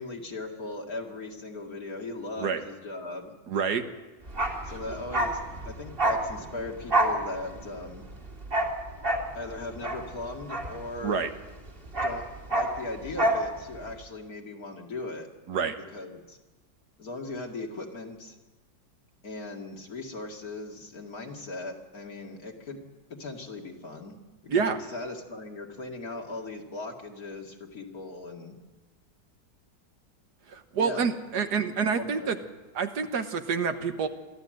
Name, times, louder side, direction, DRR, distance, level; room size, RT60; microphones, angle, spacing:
voice 1, 0.0-3.4 4.6-8.0 9.3-11.2 12.0-12.2 12.5-15.3 15.8-16.4 17.0-18.3 19.2-22.8 23.1-24.2 24.4-28.6 30.8-31.6 31.9-32.4, left 2 dB, 55° left, 1 dB, 2.7 m, -38 dB
voice 2, 3.5-3.8 4.7-4.8 11.0-11.3 15.5-15.7 24.5-24.8 30.5-32.4 32.7-34.1, right 6 dB, 70° right, 8 dB, 1.8 m, -27 dB
Bark, 4.3-11.3 11.6-13.5 13.7-13.9, right 1 dB, 30° right, 2.5 m, -28 dB
23.5 x 14.0 x 7.8 m, 1.2 s
omnidirectional pair, 1.8 m